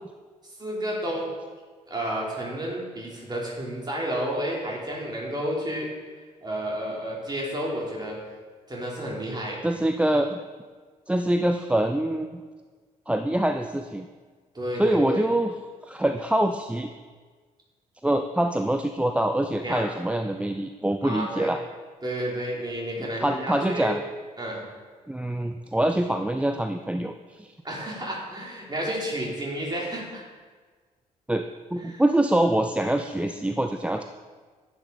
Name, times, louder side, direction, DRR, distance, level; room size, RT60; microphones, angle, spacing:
voice 1, 0.4-1.3 1.9-5.9 6.4-8.2 8.7-9.6 14.5-15.2 19.6-19.8 21.0-21.5 22.0-23.9 24.4-24.6 27.6-30.2 31.9-32.0, right 1 dB, 20° right, -3 dB, 3.6 m, -31 dB
voice 2, 9.6-10.4 11.1-12.4 13.1-14.1 14.7-15.5 15.8-16.9 18.0-21.6 23.2-24.0 25.1-27.5 31.3-34.0, right 1 dB, 5° right, 6 dB, 0.5 m, -25 dB
10.5 x 10.5 x 4.1 m, 1.5 s
figure-of-eight pair, 40°, 20 cm